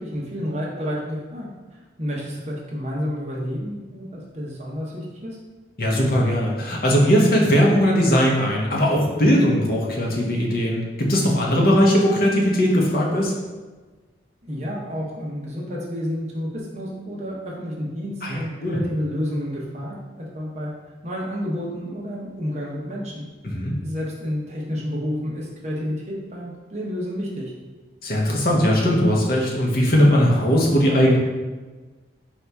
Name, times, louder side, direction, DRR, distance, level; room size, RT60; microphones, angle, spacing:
voice 1, 0.0-1.5 2.0-5.4 14.4-20.7 21.0-23.2 23.8-27.5, equal, 35° right, -4 dB, 0.8 m, -30 dB
voice 2, 5.8-13.3 18.2-18.8 23.4-23.7 28.0-31.2, equal, 50° left, -2 dB, 0.8 m, -19 dB
4.4 x 2.8 x 3.4 m, 1.3 s
head